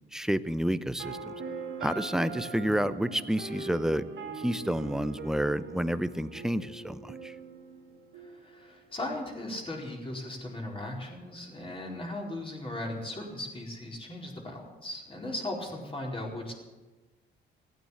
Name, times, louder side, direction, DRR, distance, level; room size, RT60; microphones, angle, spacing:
voice 1, 0.1-1.3 1.8-4.0 4.3-7.4, equal, 5° right, 14 dB, 0.7 m, -29 dB
sound 1, 1.0-9.0, right 4 dB, 70° right, 2.2 m, -41 dB
voice 2, 8.1-16.5, left 1 dB, 25° left, -1 dB, 4.5 m, -37 dB
16.0 x 9.3 x 8.6 m, 1.2 s
cardioid pair, 90°, 20 cm